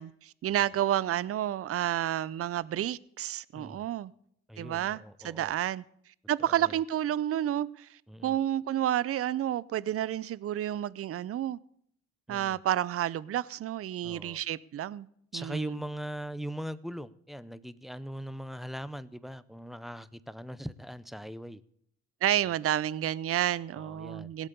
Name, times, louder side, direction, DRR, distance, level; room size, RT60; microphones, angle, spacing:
voice 1, 0.0-4.1 4.6-5.8 6.3-7.9 8.2-11.6 12.3-15.1 15.3-15.8 22.2-24.5, right 12 dB, 50° right, 0.5 m, -30 dB
voice 2, 4.5-5.5 6.4-6.8 8.1-8.4 12.3-12.6 14.0-14.4 15.3-21.6 23.7-24.3, equal, ahead, 0.6 m, -40 dB
17.0 x 8.2 x 6.8 m
cardioid pair, 90°, 30 cm